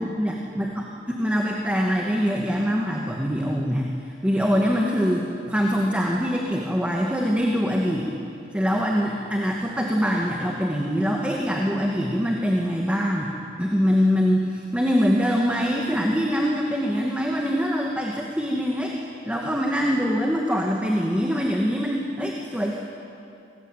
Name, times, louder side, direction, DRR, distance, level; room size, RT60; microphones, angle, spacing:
voice 1, 0.0-3.9 4.2-8.1 8.5-13.3 13.6-19.0 19.2-22.8, equal, 5° right, -1 dB, 2.1 m, -24 dB
30.0 x 21.0 x 9.2 m, 2.6 s
head